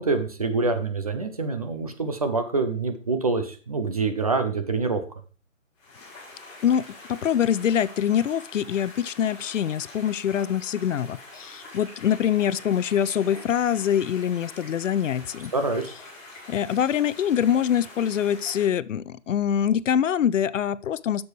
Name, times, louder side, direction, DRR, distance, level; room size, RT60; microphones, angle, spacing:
voice 1, 0.0-5.0 15.5-15.9, right 3 dB, 30° right, 8 dB, 0.6 m, -26 dB
sound 1, 5.8-18.7, left 2 dB, 15° left, 2.0 m, -45 dB
voice 2, 6.6-15.5 16.5-21.2, left 9 dB, 70° left, 18 dB, 0.5 m, -24 dB
8.7 x 6.9 x 3.3 m, 0.36 s
hypercardioid pair, 165°, 39 cm